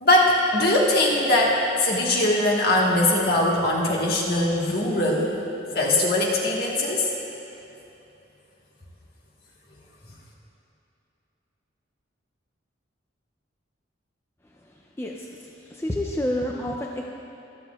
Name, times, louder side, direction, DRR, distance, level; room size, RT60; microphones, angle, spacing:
voice 1, 0.0-5.3 5.7-7.1, left 1 dB, 50° left, -3 dB, 1.5 m, -21 dB
voice 2, 15.7-17.0, left 1 dB, 15° left, -1 dB, 0.4 m, -28 dB
24.0 x 8.1 x 2.4 m, 2.8 s
head